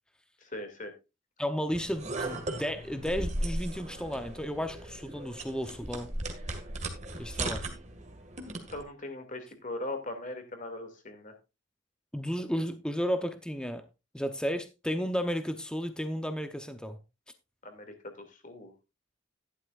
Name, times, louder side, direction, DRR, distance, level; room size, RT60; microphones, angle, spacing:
voice 1, 0.4-0.9 8.7-11.3 17.6-18.7, left 2 dB, 40° left, 2.5 m, -40 dB
voice 2, 1.4-6.1 7.2-7.6 12.1-13.8 14.1-17.0, equal, 5° left, 0.8 m, -33 dB
sound 1, 1.7-8.8, right 2 dB, 35° right, 2.0 m, -37 dB
13.0 x 11.5 x 2.5 m
head